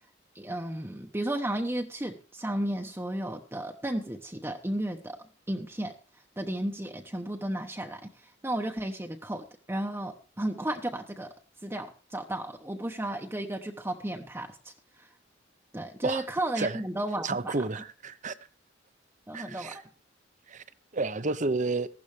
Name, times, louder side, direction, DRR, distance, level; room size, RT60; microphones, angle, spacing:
voice 1, 0.3-5.2 5.5-5.9 6.4-11.3 11.6-15.1 15.7-17.5 19.3-19.8, right 1 dB, 15° right, 0.9 m, -33 dB
voice 2, 17.2-18.3 19.3-19.8 20.5-20.6 20.9-21.9, right 3 dB, 40° right, 0.8 m, -30 dB
15.5 x 12.0 x 3.3 m
head